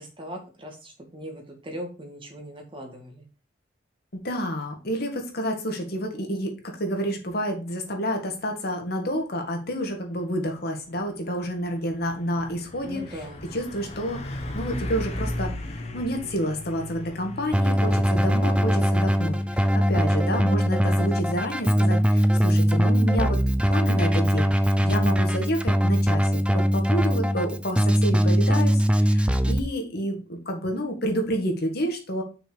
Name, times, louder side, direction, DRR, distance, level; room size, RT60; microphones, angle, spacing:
voice 1, 0.0-3.3 12.8-13.4, equal, 30° right, 2 dB, 2.1 m, -39 dB
voice 2, 4.1-13.0 13.5-23.4 23.7-32.2, equal, 60° left, 3 dB, 1.9 m, -29 dB
Truck, 10.3-24.6, left 1 dB, 35° left, 1.2 m, -38 dB
Keyboard (musical), 17.5-29.6, equal, 5° right, 0.5 m, -21 dB
6.2 x 4.9 x 5.0 m, 0.33 s
head